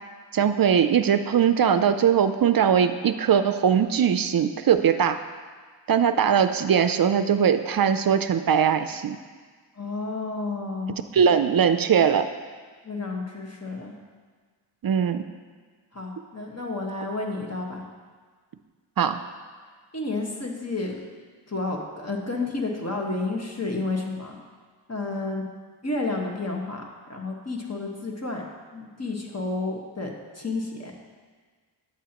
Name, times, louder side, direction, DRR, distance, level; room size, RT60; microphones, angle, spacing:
voice 1, 0.3-5.2 5.9-9.2 11.1-12.3 14.8-15.2 19.0-19.2, right 7 dB, 55° right, 10 dB, 0.5 m, -21 dB
voice 2, 9.8-11.4 12.8-13.9 15.9-17.8 19.9-21.1 21.5-24.4 24.9-25.4 25.8-26.8 27.1-28.4 28.7-30.9, left 3 dB, 35° left, 0 dB, 1.3 m, -31 dB
10.0 x 8.3 x 2.9 m, 1.5 s
wide cardioid pair, 65°, 44 cm